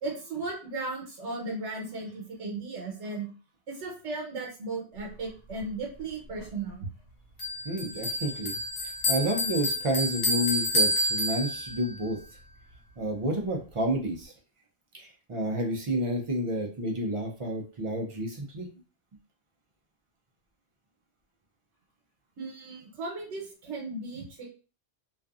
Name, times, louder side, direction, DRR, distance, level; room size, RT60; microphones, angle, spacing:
voice 1, 0.0-3.3 3.7-6.9 22.4-24.5, right 3 dB, 85° right, -1 dB, 1.1 m, -36 dB
Bell, 7.4-11.9, left 1 dB, 65° left, 1.0 m, -29 dB
voice 2, 7.6-8.6 8.8-12.2 13.0-14.3 14.9-18.7, right 1 dB, 55° right, 1 dB, 0.3 m, -30 dB
2.5 x 2.4 x 2.3 m, 0.35 s
omnidirectional pair, 1.2 m